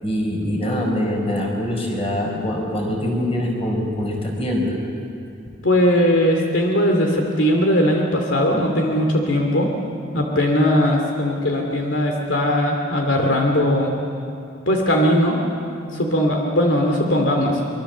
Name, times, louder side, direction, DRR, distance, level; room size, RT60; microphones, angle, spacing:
voice 1, 0.0-4.7, left 1 dB, 30° left, 0 dB, 4.7 m, -23 dB
voice 2, 5.6-9.7 10.1-13.9 14.7-15.4 15.9-17.6, equal, 65° left, 1 dB, 2.6 m, -19 dB
24.5 x 24.0 x 7.4 m, 2.7 s
head